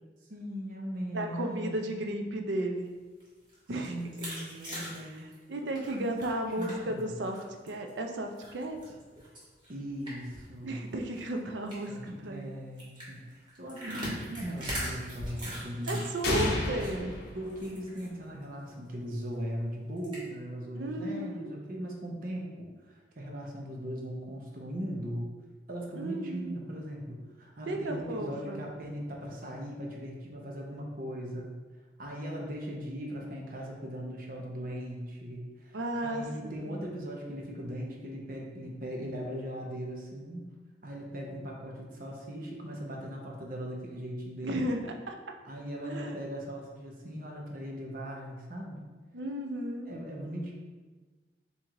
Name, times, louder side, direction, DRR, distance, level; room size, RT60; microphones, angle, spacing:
voice 1, 0.3-1.9 3.9-5.3 5.6-6.3 6.6-7.1 9.7-10.8 11.9-12.1 12.3-16.1 17.3-25.3 25.7-31.5 32.0-40.5 40.8-44.7 45.4-48.8 49.9-50.5, equal, 50° right, -1 dB, 0.8 m, -39 dB
voice 2, 1.1-2.9 3.7-4.0 5.5-7.4 7.6-8.8 10.6-12.5 13.9-14.1 15.9-17.1 20.7-21.5 26.0-26.6 27.7-28.6 35.7-36.8 44.4-44.8 45.1-45.2 45.8-46.2 49.1-50.0, right 1 dB, 80° right, 4 dB, 0.5 m, -34 dB
sound 1, 3.1-7.0 7.3-7.9 8.4-10.5 10.8-10.9 11.1-11.3 11.7-12.0 12.8-16.9 17.3-18.1 18.4-18.5 18.9-19.0 20.0-20.2, equal, 25° right, 1.4 m, -40 dB
sound 2, 16.2-18.2, left 2 dB, 60° left, 0.7 m, -32 dB
4.5 x 2.7 x 3.7 m, 1.3 s
head